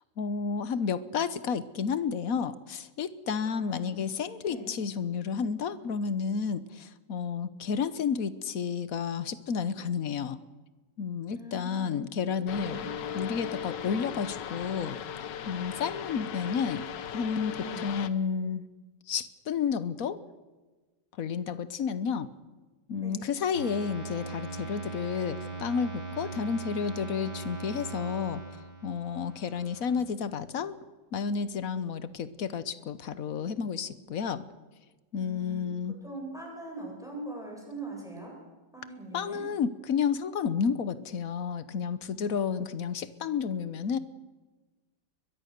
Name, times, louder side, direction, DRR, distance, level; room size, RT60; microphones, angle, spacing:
voice 1, 0.2-10.4 11.0-15.0 15.4-16.8 17.1-18.6 19.1-20.2 21.2-22.3 22.9-28.4 28.8-30.8 31.1-34.4 35.1-36.0 39.1-44.0, left 6 dB, 60° left, 14 dB, 1.4 m, -31 dB
voice 2, 3.5-4.0 4.5-4.7 11.3-12.0 12.6-12.9 17.6-17.9 23.0-23.3 35.2-35.7 36.0-38.3 38.7-39.4, right 1 dB, ahead, -1 dB, 7.7 m, -42 dB
sound 1, 12.5-18.1, left 8 dB, 85° left, 1.7 m, -37 dB
sound 2, 23.5-30.0, right 3 dB, 75° right, 5.6 m, -40 dB
22.5 x 21.5 x 6.7 m, 1.2 s
omnidirectional pair, 1.8 m